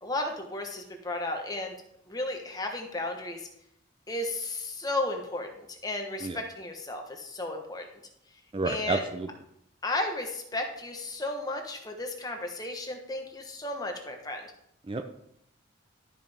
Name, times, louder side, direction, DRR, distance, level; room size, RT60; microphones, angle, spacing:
voice 1, 0.0-1.7 2.1-3.5 4.1-7.9 8.6-9.0 9.8-14.5, left 2 dB, 20° left, 3 dB, 1.0 m, -34 dB
voice 2, 8.5-9.3 14.9-15.0, right 3 dB, 25° right, 6 dB, 0.4 m, -30 dB
12.5 x 5.4 x 3.4 m, 0.75 s
head